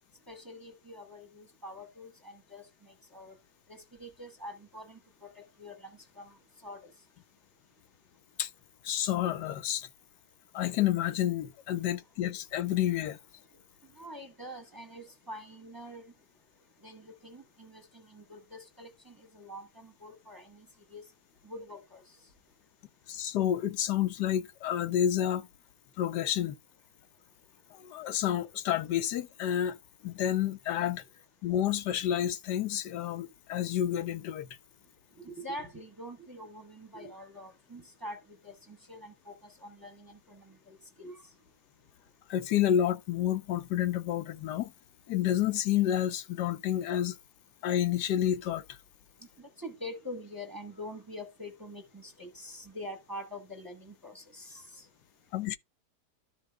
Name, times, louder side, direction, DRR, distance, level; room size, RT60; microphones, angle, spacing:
voice 1, 0.3-3.3 3.7-6.9 13.9-16.1 16.8-21.0 21.4-22.0 35.2-41.2 49.4-54.9, left 1 dB, 15° right, 0.9 m, -45 dB
voice 2, 8.8-9.9 10.5-13.2 23.1-25.5 26.0-26.6 27.7-29.8 30.0-31.0 31.4-34.6 42.3-44.7 45.1-47.2 47.6-48.8 55.3-55.6, left 11 dB, 85° left, 1.3 m, -29 dB
12.5 x 5.7 x 2.2 m
omnidirectional pair, 1.7 m